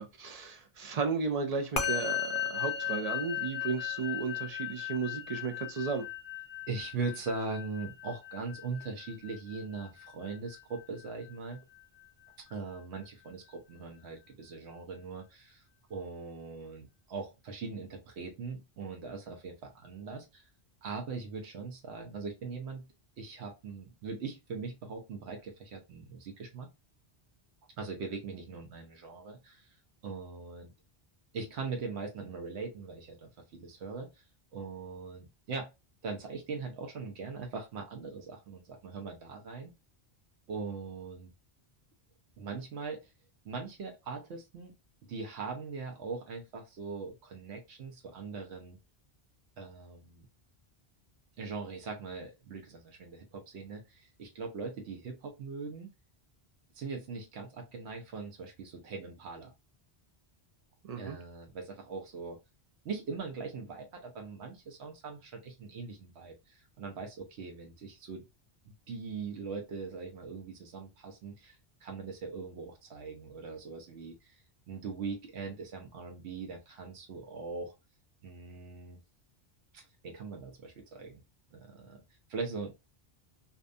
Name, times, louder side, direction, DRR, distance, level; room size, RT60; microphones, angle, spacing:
voice 1, 0.0-6.1 60.9-61.2, right 5 dB, 55° right, 0.4 m, -34 dB
Musical instrument, 1.8-11.3, left 9 dB, 60° left, 0.6 m, -37 dB
voice 2, 6.7-11.6 12.5-15.6 15.9-20.4 20.8-22.9 23.2-26.7 27.8-29.7 30.0-30.7 31.3-34.2 34.5-35.7 36.0-39.7 40.5-41.3 42.4-43.1 43.4-44.7 45.1-48.8 49.6-50.3 51.4-55.9 56.7-59.5 61.0-62.4 62.8-68.2 68.9-74.4 74.7-77.7 78.2-79.0 79.7-81.2 81.5-82.0 82.3-82.8, right 4 dB, 85° right, 0.9 m, -41 dB
2.6 x 2.2 x 2.4 m
omnidirectional pair, 1.1 m